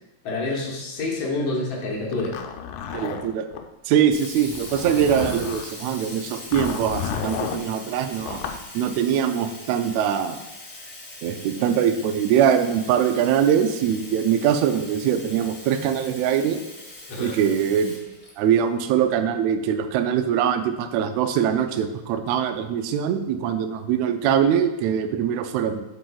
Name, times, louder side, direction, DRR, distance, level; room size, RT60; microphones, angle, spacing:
voice 1, 0.2-2.4 17.1-17.4, left 2 dB, 60° left, -2 dB, 1.9 m, -27 dB
Zipper (clothing), 2.1-3.6 4.5-5.7 6.5-7.6 8.2-8.6, left 7 dB, 85° left, 2.2 m, -31 dB
voice 2, 2.9-3.5 3.9-8.4 8.7-10.4 11.2-16.6 17.2-17.9 18.4-25.8, right 8 dB, 85° right, 8 dB, 1.5 m, -22 dB
Sink (filling or washing), 4.1-18.9, left 2 dB, 30° left, 1.2 m, -41 dB
7.4 x 6.9 x 2.3 m, 1.0 s
omnidirectional pair, 3.7 m